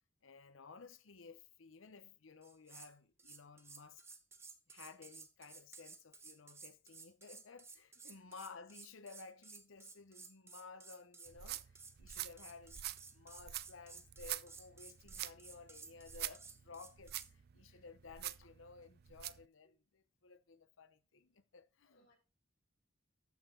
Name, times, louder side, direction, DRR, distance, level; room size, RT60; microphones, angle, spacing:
voice 1, 0.2-4.0 4.7-12.8 13.1-22.0, left 4 dB, 85° left, 0.9 m, -56 dB
sound 1, 2.4-2.9 3.2-17.3, right 4 dB, 15° right, 0.8 m, -55 dB
sound 2, 11.3-19.5, right 14 dB, 55° right, 0.4 m, -46 dB
voice 2, 21.8-22.1, left 1 dB, 60° left, 5.3 m, -73 dB
13.0 x 6.2 x 3.8 m
head